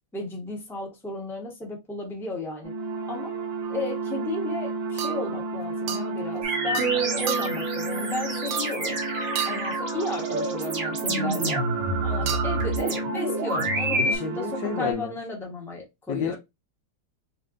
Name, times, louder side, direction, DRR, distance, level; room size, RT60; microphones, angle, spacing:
voice 1, 0.1-2.7 3.1-3.3 3.7-9.0 9.4-11.6 12.0-16.4, left 2 dB, ahead, 0.8 m, -34 dB
sound 1, 2.6-14.9, right 3 dB, 85° right, 2.0 m, -32 dB
sound 2, 3.6-3.8 5.0-5.4 5.9-6.1 6.7-7.0 7.3-7.7 8.5-8.9 9.4-9.8 12.3-12.7, right 8 dB, 70° right, 1.1 m, -32 dB
sound 3, 6.4-14.2, right 2 dB, 50° right, 1.0 m, -28 dB
voice 2, 14.0-15.1 16.1-16.4, left 7 dB, 75° left, 1.2 m, -31 dB
4.3 x 2.3 x 3.7 m
omnidirectional pair, 2.1 m